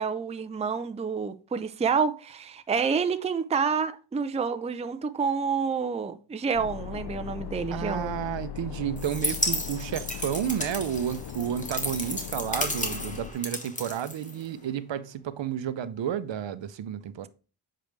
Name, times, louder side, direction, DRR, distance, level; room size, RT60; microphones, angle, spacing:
voice 1, 0.0-8.1, right 5 dB, 15° right, 0.4 m, -28 dB
sound 1, 6.5-13.3, left 10 dB, 55° left, 0.6 m, -39 dB
voice 2, 7.7-17.3, right 10 dB, 65° right, 0.7 m, -31 dB
sound 2, 9.0-14.7, left 2 dB, 15° left, 1.1 m, -33 dB
7.7 x 5.1 x 3.2 m
wide cardioid pair, 95°, 47 cm